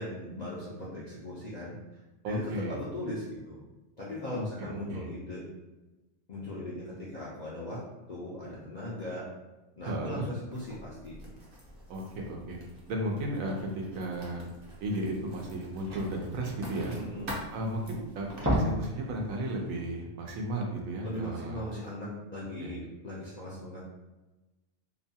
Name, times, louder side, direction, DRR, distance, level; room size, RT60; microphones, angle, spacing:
voice 1, 0.0-1.8 2.2-3.6 4.0-5.4 6.3-7.8 8.1-9.3 9.8-11.2 16.9-17.3 21.0-23.8, left 1 dB, 60° left, -7 dB, 0.4 m, -38 dB
voice 2, 2.2-2.8 4.3-4.4 4.9-5.1 9.9-10.3 11.9-12.6 12.9-14.4 14.8-17.0 17.5-21.6 22.6-22.8, right 1 dB, 85° right, 1 dB, 1.0 m, -34 dB
Writing, 10.5-18.4, equal, 50° right, 0.8 m, -47 dB
sound 1, 14.8-14.9 15.2-15.3 15.5-17.8 18.2-19.0 19.3-19.4 19.9-20.0, equal, 15° right, 0.5 m, -32 dB
2.8 x 2.2 x 2.7 m, 1.1 s
omnidirectional pair, 1.4 m